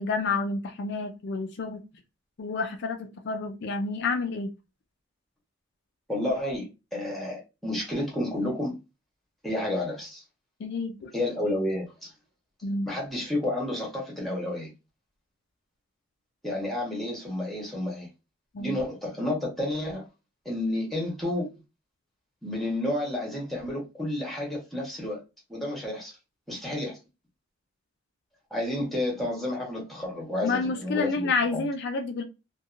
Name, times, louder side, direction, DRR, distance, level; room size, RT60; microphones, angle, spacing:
voice 1, 0.0-1.8 2.4-4.5 10.6-11.1 12.6-12.9 18.5-18.8 30.4-32.2, left 4 dB, 60° left, 0.4 m, -29 dB
voice 2, 6.1-8.7 9.4-10.2 11.1-12.1 12.8-14.7 16.4-18.1 18.6-20.0 20.4-21.5 22.4-25.2 25.5-26.1 26.5-27.0 28.5-31.7, left 1 dB, ahead, 1.1 m, -31 dB
2.8 x 2.2 x 2.4 m
head